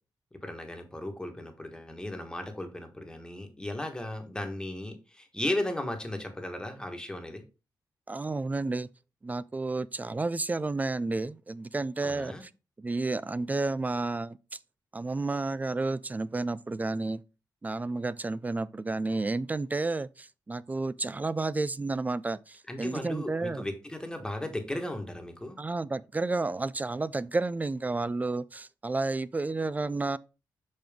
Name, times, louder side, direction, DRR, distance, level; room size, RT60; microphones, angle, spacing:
voice 1, 0.4-7.4 12.0-12.4 22.7-25.6, left 1 dB, 10° left, 1.3 m, -36 dB
voice 2, 8.1-8.9 9.2-12.5 12.8-14.4 14.9-17.2 17.6-23.7 25.6-30.2, right 3 dB, 20° right, 0.3 m, -31 dB
5.9 x 5.2 x 3.5 m
cardioid pair, 95°, 8 cm